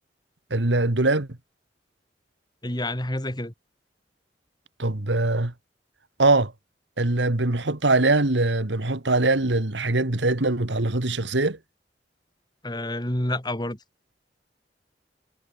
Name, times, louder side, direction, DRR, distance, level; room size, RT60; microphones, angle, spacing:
voice 1, 0.5-1.3 4.8-5.5 6.2-6.5 7.0-11.6, right 2 dB, 90° right, 1.9 m, -22 dB
voice 2, 2.6-3.5 12.6-13.8, left 1 dB, 25° left, 2.9 m, -28 dB
head